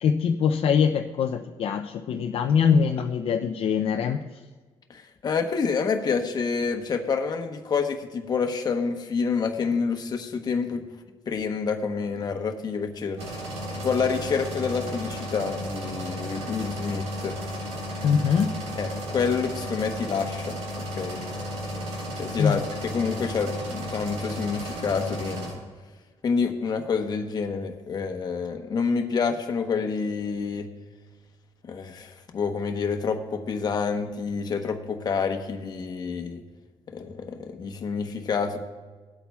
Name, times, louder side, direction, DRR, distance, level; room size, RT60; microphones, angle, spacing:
voice 1, 0.0-4.5 18.0-18.7 22.4-22.6, left 6 dB, 60° left, 4 dB, 0.5 m, -23 dB
voice 2, 4.9-10.8 11.3-13.2 13.7-17.4 18.8-20.6 21.0-21.2 22.2-25.6 26.2-30.7 31.7-36.4 36.9-38.6, left 5 dB, 40° left, 5 dB, 1.0 m, -28 dB
sound 1, 13.2-25.5, equal, 90° right, 3.7 m, -34 dB
19.0 x 8.4 x 2.3 m, 1.4 s
cardioid pair, 170°, 11 cm